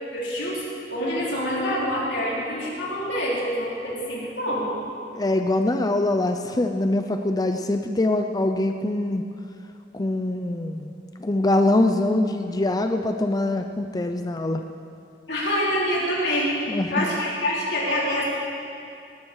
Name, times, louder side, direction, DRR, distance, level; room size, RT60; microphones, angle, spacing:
voice 1, 0.1-0.6 0.9-4.7 15.3-16.6 16.9-18.2, equal, 85° left, -6 dB, 4.6 m, -26 dB
voice 2, 5.1-9.2 9.9-10.9 11.2-14.6 16.7-17.1, left 2 dB, 20° left, 6 dB, 0.5 m, -23 dB
19.0 x 13.0 x 4.8 m, 2.6 s
head